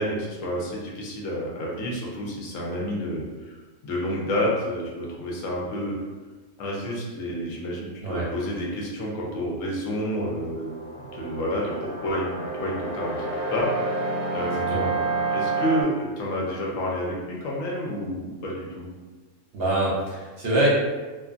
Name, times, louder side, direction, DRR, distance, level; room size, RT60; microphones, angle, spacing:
voice 1, 0.0-3.5 3.8-6.0 6.6-13.3 13.5-14.9 15.3-18.9, equal, 85° left, -3 dB, 1.1 m, -29 dB
sound 1, 10.1-15.8, right 3 dB, 45° left, 1.0 m, -29 dB
voice 2, 14.5-14.9 19.5-20.7, right 1 dB, 55° right, -5 dB, 0.8 m, -24 dB
2.5 x 2.5 x 2.4 m, 1.3 s
omnidirectional pair, 1.3 m